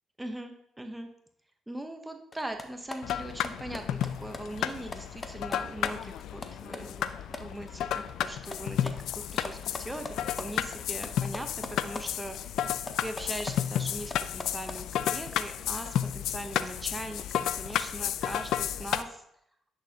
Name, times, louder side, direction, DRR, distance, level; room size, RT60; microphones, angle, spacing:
voice 1, 0.2-1.1 1.7-12.7 13.0-19.2, right 1 dB, 10° right, 5 dB, 0.8 m, -40 dB
sound 1, 2.3-7.4 7.7-10.4 10.8-12.0 12.3-14.8, left 3 dB, 25° left, 0.8 m, -41 dB
sound 2, 3.0-19.0, left 10 dB, 80° left, 0.3 m, -32 dB
10.0 x 6.4 x 2.8 m, 0.73 s
cardioid pair, 90°, 0 cm